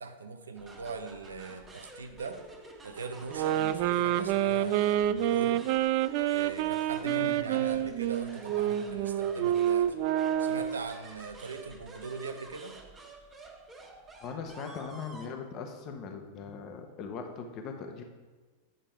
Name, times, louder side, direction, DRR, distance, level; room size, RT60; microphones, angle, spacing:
voice 1, 0.0-2.4 2.8-5.6 6.3-10.0 10.4-12.8, right 4 dB, 85° right, 8 dB, 0.7 m, -41 dB
sound 1, 0.6-15.3, right 2 dB, 25° right, 1.6 m, -50 dB
sound 2, 3.3-10.9, right 11 dB, 55° right, 0.4 m, -28 dB
voice 2, 7.0-7.8 14.2-18.0, left 5 dB, 45° left, 4 dB, 1.0 m, -40 dB
9.0 x 5.1 x 4.5 m, 1.3 s
hypercardioid pair, 95°, 0 cm